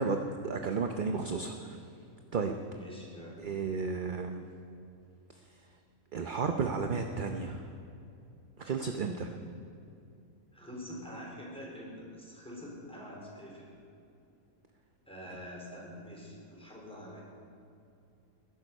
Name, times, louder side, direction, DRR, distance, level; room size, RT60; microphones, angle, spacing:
voice 1, 0.0-1.8 2.3-2.6 3.4-4.4 6.1-7.6 8.6-9.3, right 5 dB, 45° right, 5 dB, 0.7 m, -33 dB
voice 2, 2.7-3.4 9.0-9.2 10.5-13.7 15.1-17.2, equal, 5° left, -4 dB, 4.1 m, -45 dB
20.5 x 11.0 x 5.4 m, 2.6 s
omnidirectional pair, 1.5 m